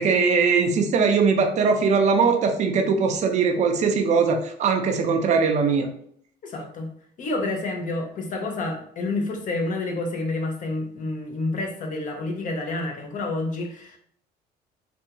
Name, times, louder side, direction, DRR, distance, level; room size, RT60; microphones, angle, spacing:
voice 1, 0.0-5.9, right 5 dB, 45° right, 4 dB, 0.4 m, -21 dB
voice 2, 6.4-6.9 7.2-14.0, left 2 dB, 50° left, 2 dB, 0.7 m, -29 dB
2.6 x 2.3 x 2.8 m, 0.64 s
cardioid pair, 110°, 17 cm